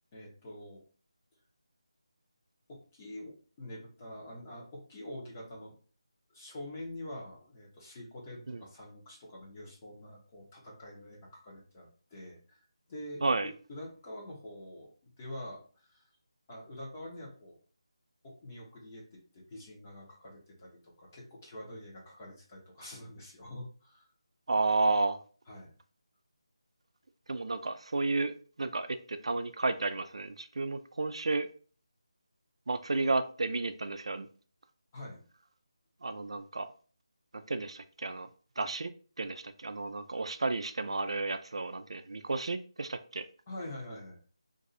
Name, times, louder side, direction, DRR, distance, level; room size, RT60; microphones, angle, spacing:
voice 1, 0.1-0.8 2.7-5.7 6.3-12.6 12.9-13.2 13.7-16.0 16.5-17.6 18.2-19.0 19.3-24.1 25.5-25.7 34.9-35.2 43.5-44.2, left 1 dB, 20° left, 1.0 m, -46 dB
voice 2, 13.2-13.5 24.5-25.2 27.3-28.3 28.6-31.5 32.7-34.3 36.0-36.7 37.5-38.3 38.6-38.9 39.2-43.3, right 3 dB, 70° right, 0.4 m, -32 dB
2.6 x 2.4 x 4.1 m
figure-of-eight pair, 170°, 3 cm